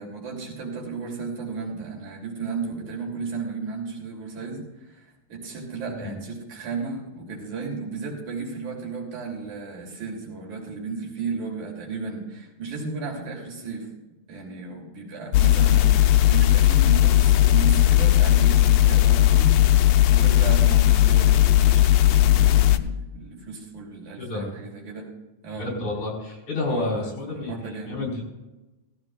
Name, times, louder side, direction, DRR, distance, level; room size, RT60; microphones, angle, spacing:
voice 1, 0.0-13.9 14.3-25.1 25.4-25.7 26.7-28.0, right 4 dB, 65° right, -2 dB, 4.1 m, -34 dB
sound 1, 15.3-22.8, left 14 dB, 85° left, 1.5 m, -17 dB
voice 2, 24.2-24.6 25.6-28.2, left 2 dB, 65° left, -2 dB, 5.5 m, -30 dB
17.0 x 15.0 x 2.4 m, 1.1 s
omnidirectional pair, 3.6 m